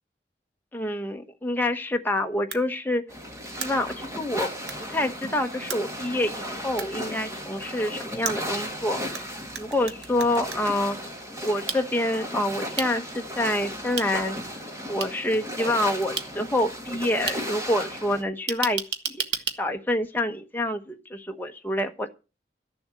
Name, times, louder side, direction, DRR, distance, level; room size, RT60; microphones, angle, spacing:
voice 1, 0.7-3.0 3.6-4.5 4.9-9.2 9.6-11.0 11.4-14.4 14.9-18.8 19.1-19.2 19.6-22.1, left 1 dB, 10° left, 5 dB, 1.2 m, -27 dB
sound 1, 2.5-2.6 3.6-3.7 4.7-4.8 5.7-5.8 6.8-6.9 8.2-9.2 9.5-10.7 11.7-11.8 12.8-12.9 14.0-14.1 15.0-15.1 16.2-16.3 17.3-17.4 18.5-19.6, right 6 dB, 75° right, 1.6 m, -31 dB
sound 2, 3.1-18.2, equal, 15° right, 2.2 m, -35 dB
13.5 x 7.1 x 7.6 m, 0.32 s
head